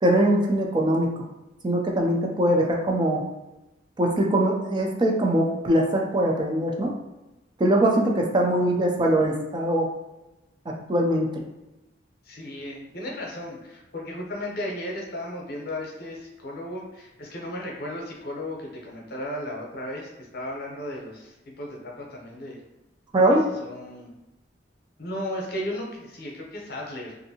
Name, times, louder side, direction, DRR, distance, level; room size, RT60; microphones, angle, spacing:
voice 1, 0.0-1.1 1.6-3.2 4.0-6.9 7.6-9.9 10.7-11.3 23.1-23.4, right 1 dB, 25° right, 1 dB, 0.4 m, -22 dB
voice 2, 12.2-22.6 23.6-24.1 25.0-27.1, left 1 dB, 55° left, -2 dB, 0.7 m, -35 dB
2.6 x 2.6 x 2.7 m, 1.0 s
head